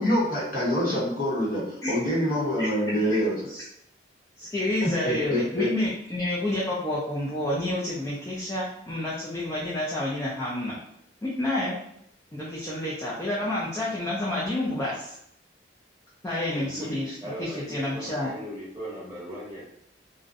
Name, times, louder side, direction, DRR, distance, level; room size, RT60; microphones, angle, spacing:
voice 1, 0.0-3.3 4.8-5.7, equal, 45° left, -6 dB, 0.8 m, -26 dB
voice 2, 4.4-10.8 11.2-11.8 12.3-15.2 16.2-18.3, left 1 dB, 15° left, -7 dB, 0.3 m, -29 dB
voice 3, 16.5-19.7, equal, 15° right, -7 dB, 0.8 m, -38 dB
2.5 x 2.0 x 2.4 m, 0.74 s
head